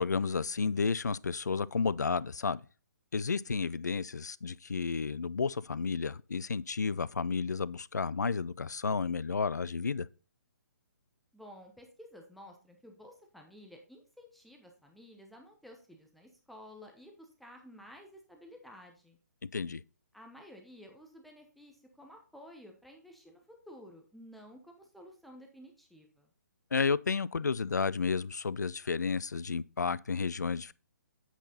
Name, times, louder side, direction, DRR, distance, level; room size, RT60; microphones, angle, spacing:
voice 1, 0.0-2.6 3.1-10.1 19.4-19.8 26.7-30.7, left 5 dB, 70° left, 0.4 m, -32 dB
voice 2, 11.3-19.2 20.1-26.3, equal, ahead, 0.9 m, -53 dB
8.2 x 5.9 x 3.9 m
figure-of-eight pair, 130°, 9 cm